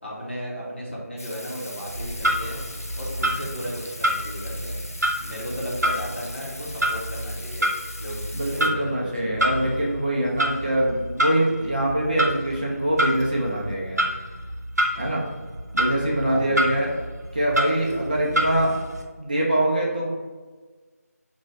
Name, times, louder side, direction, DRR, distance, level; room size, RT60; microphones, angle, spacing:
voice 1, 0.0-2.6 3.0-4.8 5.2-7.7 8.0-8.2 8.5-9.6 14.9-15.2 16.2-16.8, equal, 45° left, -5 dB, 1.1 m, -35 dB
Water tap faucet / Sink (filling or washing), 1.2-8.7, left 2 dB, 60° left, 0.5 m, -41 dB
Clock, 1.9-19.0, equal, 75° right, 0.8 m, -28 dB
voice 2, 8.3-14.0 15.0-15.2 15.7-16.9 17.3-18.7 19.2-20.1, right 1 dB, 30° right, -5 dB, 0.5 m, -24 dB
3.0 x 2.6 x 4.1 m, 1.4 s
figure-of-eight pair, 175°, 9 cm